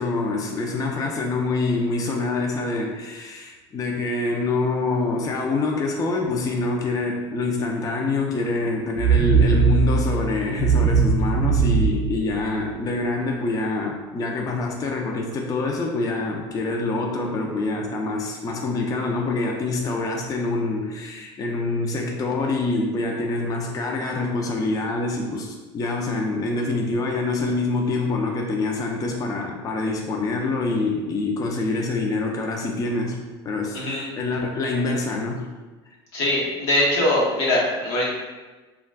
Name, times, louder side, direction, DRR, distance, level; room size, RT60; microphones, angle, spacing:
voice 1, 0.0-35.5, left 3 dB, 25° left, 0 dB, 0.4 m, -26 dB
sound 1, 9.0-13.0, right 5 dB, 50° right, 0.4 m, -20 dB
voice 2, 33.7-34.1 36.1-38.1, left 1 dB, 85° left, -5 dB, 1.0 m, -22 dB
2.3 x 2.2 x 3.3 m, 1.2 s
supercardioid pair, 95°, 13 cm